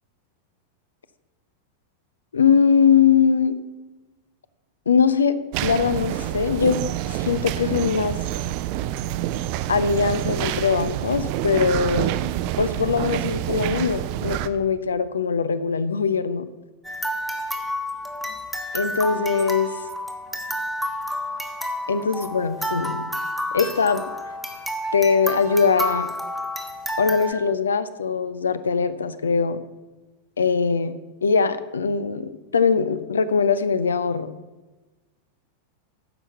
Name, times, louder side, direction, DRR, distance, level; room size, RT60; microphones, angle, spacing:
voice 1, 2.3-3.6 4.9-6.9 7.2-8.2 9.7-12.1 12.6-16.5 18.7-19.7 21.9-23.1 23.5-24.0 24.9-26.1 27.0-29.6 30.4-30.9 31.2-34.3, left 6 dB, 70° left, 15 dB, 0.5 m, -21 dB
sound 1, 5.5-14.5, right 13 dB, 45° right, 0.4 m, -27 dB
sound 2, 16.8-27.3, equal, 5° left, 1.2 m, -30 dB
10.0 x 6.0 x 6.6 m, 1.2 s
figure-of-eight pair, 90°, 0 cm